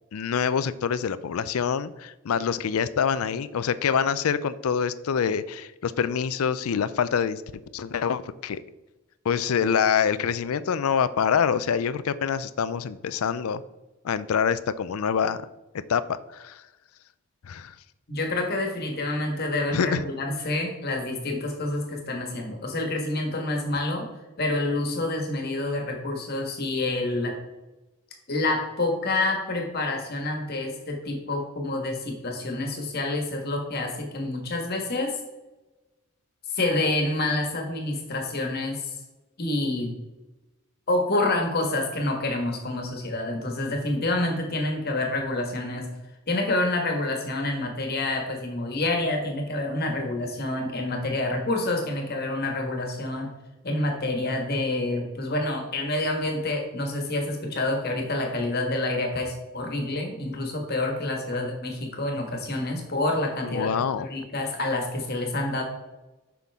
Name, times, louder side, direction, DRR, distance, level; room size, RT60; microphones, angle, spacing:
voice 1, 0.1-7.4 7.7-8.6 9.2-13.6 14.0-15.4 15.9-16.6 17.5-17.7 19.7-20.0 61.4-61.5 63.4-64.1, left 7 dB, 85° left, 16 dB, 0.4 m, -26 dB
voice 2, 18.1-24.1 24.4-27.3 28.3-35.1 36.5-38.8 39.4-39.9 40.9-45.9 46.3-53.3 53.6-65.6, left 2 dB, 45° left, 2 dB, 1.5 m, -28 dB
7.7 x 5.8 x 3.6 m, 1.1 s
head